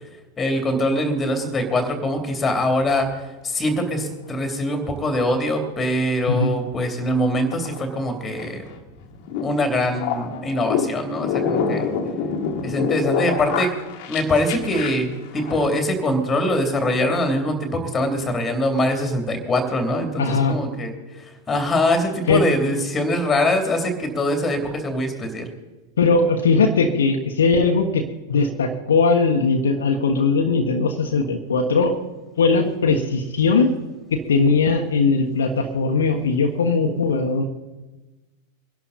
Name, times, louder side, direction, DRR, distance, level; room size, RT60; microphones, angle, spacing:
voice 1, 0.4-8.6 9.4-11.9 12.6-13.7 14.1-25.5, left 1 dB, 15° left, 5 dB, 3.0 m, -23 dB
sound 1, 2.8-3.2 7.1-15.9, left 6 dB, 45° left, 1.8 m, -27 dB
voice 2, 20.2-20.6 22.3-22.5 26.0-31.9 32.4-33.7 34.1-37.4, left 4 dB, 65° left, 3 dB, 1.4 m, -19 dB
23.0 x 11.5 x 4.2 m, 1.1 s
figure-of-eight pair, 90°, 0 cm